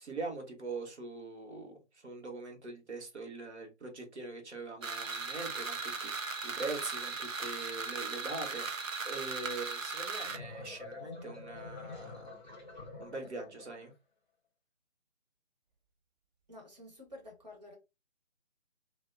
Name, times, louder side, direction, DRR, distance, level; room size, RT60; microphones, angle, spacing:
voice 1, 0.0-12.3 13.0-13.9, right 3 dB, 60° right, 1.0 m, -42 dB
sound 1, 4.8-10.4, right 4 dB, 75° right, 0.6 m, -38 dB
sound 2, 10.0-13.9, left 3 dB, 35° left, 0.7 m, -47 dB
voice 2, 16.5-17.8, left 1 dB, 30° right, 0.8 m, -50 dB
2.5 x 2.1 x 2.4 m
figure-of-eight pair, 155°, 39 cm